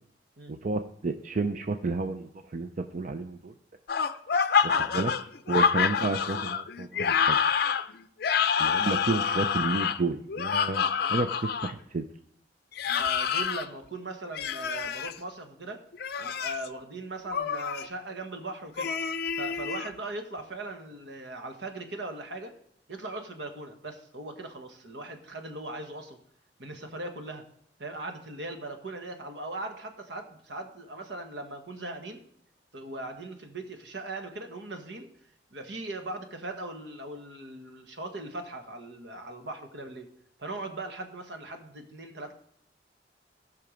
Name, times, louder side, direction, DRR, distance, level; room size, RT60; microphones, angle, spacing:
voice 1, 0.5-3.5 4.6-5.1 5.5-7.4 8.6-12.1, right 3 dB, 45° right, 7 dB, 0.5 m, -31 dB
sound 1, 3.9-11.7 12.7-13.7 14.3-15.1 15.9-16.7 17.3-17.9 18.8-19.9, left 6 dB, 60° left, 0.5 m, -27 dB
voice 2, 12.8-15.8 16.2-18.9 19.3-22.5 22.9-26.2 26.6-27.4 27.8-32.2 32.7-35.1 35.5-40.1 40.4-42.3, right 2 dB, 70° right, 5 dB, 1.4 m, -39 dB
16.0 x 5.8 x 5.1 m, 0.67 s
head